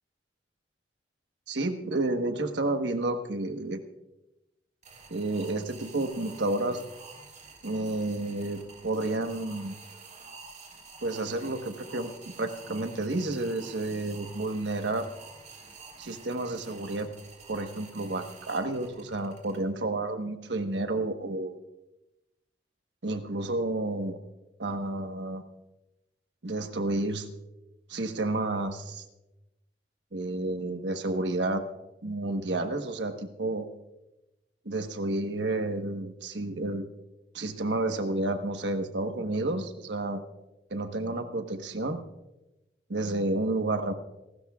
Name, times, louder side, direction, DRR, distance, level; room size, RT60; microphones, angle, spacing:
voice 1, 1.5-3.8 5.1-6.8 7.6-9.8 11.0-12.1 12.4-15.1 16.0-17.1 17.5-21.6 23.0-24.2 24.6-25.4 26.4-27.3 27.9-29.0 30.1-31.6 32.0-33.7 34.6-36.9 37.3-40.2 40.7-42.0 42.9-43.9, right 2 dB, 80° right, 7 dB, 1.3 m, -30 dB
sound 1, 4.8-19.6, right 4 dB, 45° right, 3.4 m, -49 dB
27.0 x 13.0 x 2.4 m, 0.97 s
head